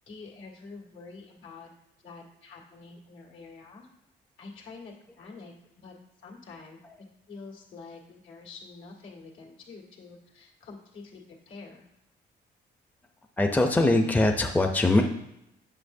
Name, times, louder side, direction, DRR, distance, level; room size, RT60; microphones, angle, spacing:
voice 1, 0.1-1.7 2.0-3.9 4.4-5.9 6.2-6.8 7.3-11.8, left 4 dB, 75° left, -1 dB, 2.0 m, -47 dB
voice 2, 13.4-15.0, left 2 dB, 10° left, 3 dB, 0.6 m, -22 dB
8.7 x 6.0 x 2.7 m, 0.84 s
cardioid pair, 90°, 20 cm